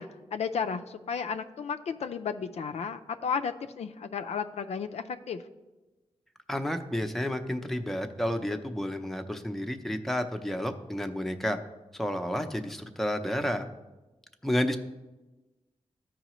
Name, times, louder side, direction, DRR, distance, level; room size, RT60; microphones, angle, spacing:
voice 1, 0.0-5.4, left 6 dB, 70° left, 8 dB, 0.4 m, -33 dB
voice 2, 6.5-11.6 11.9-13.7 14.4-14.8, equal, ahead, 5 dB, 0.6 m, -31 dB
13.5 x 4.8 x 3.0 m, 1.1 s
cardioid pair, 75°, 11 cm